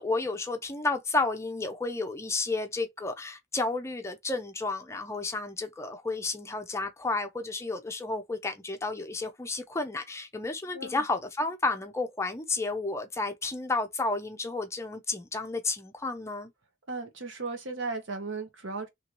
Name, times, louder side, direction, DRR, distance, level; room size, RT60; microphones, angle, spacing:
voice 1, 0.0-16.5, left 3 dB, 15° left, 0.5 m, -32 dB
voice 2, 16.9-18.9, right 3 dB, 75° right, 1.0 m, -36 dB
2.9 x 2.7 x 2.9 m
head